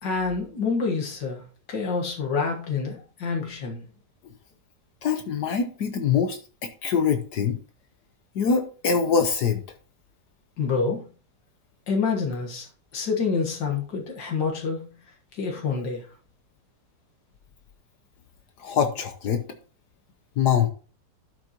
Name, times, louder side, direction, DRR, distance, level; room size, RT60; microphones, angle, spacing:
voice 1, 0.0-1.4 1.7-3.8 10.6-11.1 11.9-12.7 12.9-14.9 15.3-16.1, left 5 dB, 85° left, 2.2 m, -27 dB
voice 2, 5.0-7.6 8.3-9.6 18.6-19.4 20.4-20.7, left 6 dB, 70° left, 1.4 m, -24 dB
11.5 x 6.3 x 3.0 m
omnidirectional pair, 1.9 m